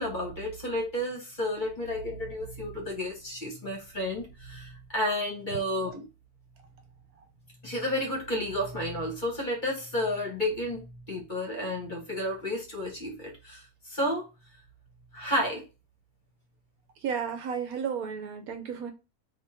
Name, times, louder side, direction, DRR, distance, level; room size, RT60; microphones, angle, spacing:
voice 1, 0.0-6.0 7.6-14.3 15.1-15.6, left 1 dB, 30° left, 0 dB, 1.5 m, -31 dB
voice 2, 17.0-18.9, right 7 dB, 70° right, 6 dB, 1.2 m, -33 dB
3.7 x 3.0 x 4.3 m, 0.28 s
omnidirectional pair, 1.6 m